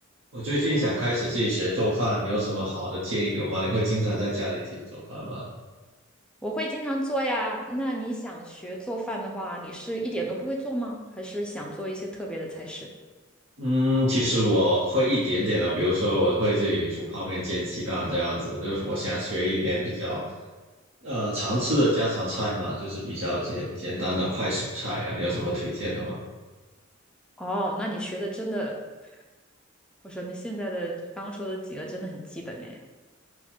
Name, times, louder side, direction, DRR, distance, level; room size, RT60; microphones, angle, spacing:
voice 1, 0.3-5.4 13.6-20.3 21.0-26.2, equal, 65° right, -9 dB, 0.9 m, -26 dB
voice 2, 6.4-12.9 27.4-28.8 30.0-32.9, right 1 dB, 5° left, -1 dB, 0.5 m, -32 dB
4.2 x 2.2 x 4.3 m, 1.3 s
head